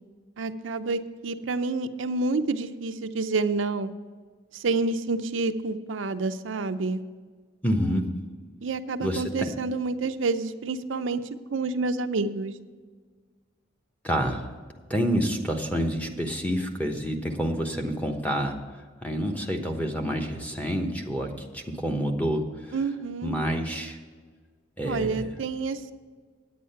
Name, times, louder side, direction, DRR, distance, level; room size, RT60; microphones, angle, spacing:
voice 1, 0.4-3.9 4.5-7.0 8.6-11.2 11.5-12.5 22.7-23.3 24.8-25.9, right 3 dB, 80° right, 9 dB, 0.6 m, -28 dB
voice 2, 7.6-8.2 9.0-9.5 14.0-14.5 14.9-22.8 23.2-24.0 24.8-25.4, equal, 10° left, 1 dB, 1.0 m, -28 dB
9.5 x 8.6 x 5.6 m, 1.5 s
head